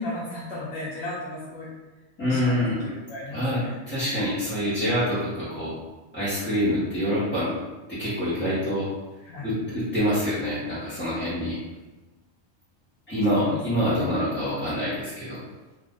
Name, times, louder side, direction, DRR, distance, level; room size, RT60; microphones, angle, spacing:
voice 1, 0.0-1.7 2.2-3.7 9.2-9.5 13.3-14.2, left 2 dB, 75° left, -7 dB, 1.1 m, -35 dB
voice 2, 2.2-2.8 3.3-3.6 3.9-5.7 6.1-7.5 7.9-8.9 9.4-11.6 13.1-15.4, equal, 10° left, -14 dB, 1.0 m, -26 dB
2.8 x 2.5 x 3.6 m, 1.1 s
omnidirectional pair, 1.4 m